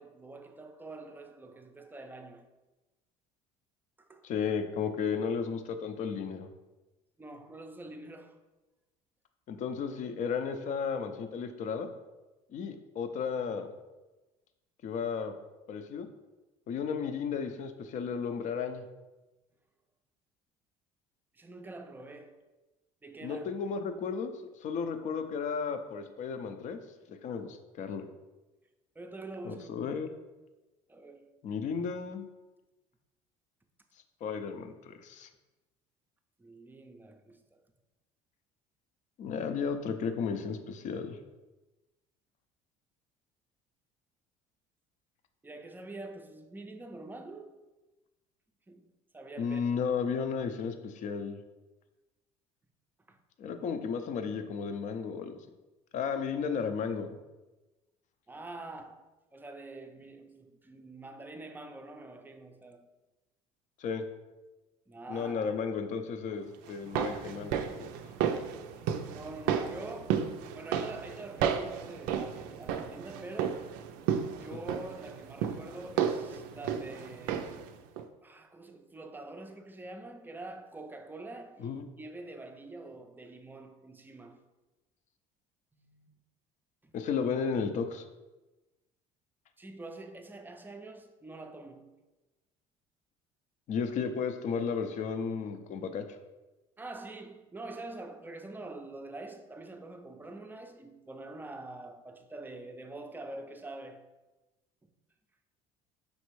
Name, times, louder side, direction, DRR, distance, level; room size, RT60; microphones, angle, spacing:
voice 1, 0.0-2.5 4.0-4.3 7.2-8.4 21.3-22.5 23.0-23.5 29.0-29.7 30.9-31.4 36.4-37.7 45.4-47.7 48.7-49.6 53.1-53.2 53.6-53.7 58.3-59.1 59.3-62.9 64.9-65.6 69.0-73.7 74.4-77.7 78.2-84.4 85.7-86.1 86.8-86.9 89.6-92.0 96.8-104.1, right 2 dB, 15° right, 0.5 m, -45 dB
voice 2, 4.2-6.5 9.5-11.9 12.5-13.7 14.8-15.3 15.7-16.1 16.7-18.8 23.2-24.3 24.6-26.8 27.1-28.1 29.4-30.1 31.4-32.3 34.2-35.3 39.2-41.2 49.4-51.4 53.4-55.4 55.9-57.2 63.8-64.0 65.1-67.9 81.6-81.9 86.9-88.0 93.7-96.2, left 6 dB, 55° left, 0.5 m, -34 dB
sound 1, 66.7-77.7 78.0-78.1, right 8 dB, 80° right, 0.4 m, -33 dB
5.3 x 3.2 x 3.1 m
supercardioid pair, 90°, 15 cm